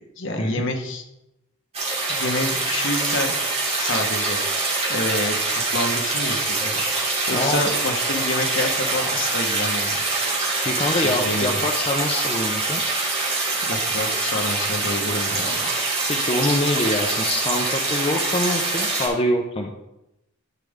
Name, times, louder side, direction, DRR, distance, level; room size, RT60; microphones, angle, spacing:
voice 1, 0.2-1.0 2.1-3.3 3.8-4.4 4.9-10.0 11.0-11.6 13.3-15.7, left 2 dB, 60° left, 3 dB, 1.3 m, -28 dB
sound 1, 1.7-19.1, right 3 dB, 30° right, 2.8 m, -24 dB
voice 2, 7.3-7.7 10.6-12.8 16.1-19.7, left 1 dB, 30° left, 1 dB, 0.7 m, -24 dB
12.5 x 5.3 x 3.6 m, 0.90 s
head